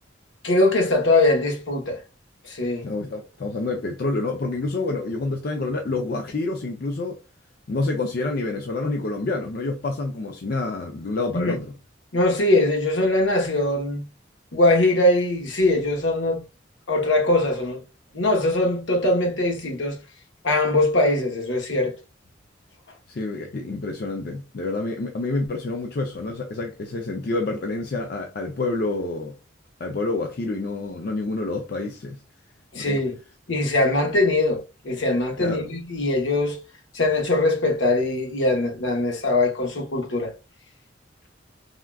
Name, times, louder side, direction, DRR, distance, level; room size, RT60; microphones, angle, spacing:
voice 1, 0.4-2.0 2.4-2.9 11.3-11.6 12.1-14.0 14.5-16.4 16.9-17.8 18.1-20.0 20.4-22.0 32.7-33.2 33.5-36.6 36.9-40.3, left 2 dB, 75° left, 1.0 m, -21 dB
voice 2, 2.8-7.2 7.7-11.7 23.1-29.4 29.8-32.2 32.9-33.0 35.4-35.7, left 2 dB, 50° left, 0.4 m, -28 dB
3.5 x 2.3 x 2.2 m
head